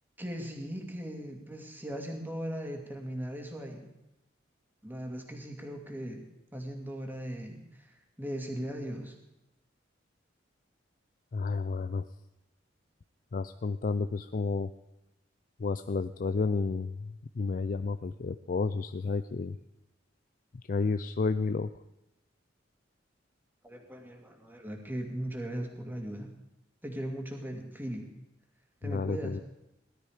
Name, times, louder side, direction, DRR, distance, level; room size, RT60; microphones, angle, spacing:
voice 1, 0.2-3.9 4.8-6.2 6.5-9.2 23.6-26.3 26.8-28.1 28.8-29.4, equal, 10° right, 2 dB, 2.3 m, -38 dB
voice 2, 11.3-12.1 13.3-14.7 15.6-19.6 20.7-21.7 28.8-29.4, left 4 dB, 45° left, 11 dB, 0.4 m, -31 dB
17.5 x 12.5 x 5.0 m, 0.88 s
head